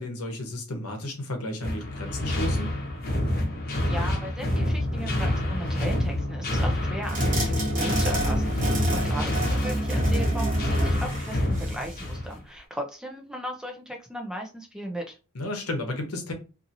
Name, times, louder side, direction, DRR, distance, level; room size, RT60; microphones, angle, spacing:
voice 1, 0.0-2.7 8.6-8.8 15.3-16.3, left 1 dB, 85° left, 0.9 m, -33 dB
sound 1, 1.6-12.4, left 1 dB, 45° left, 0.8 m, -27 dB
voice 2, 3.9-15.2, equal, 5° right, 0.4 m, -36 dB
sound 2, 7.0-12.1, right 1 dB, 40° right, 1.0 m, -27 dB
2.7 x 2.6 x 2.6 m
head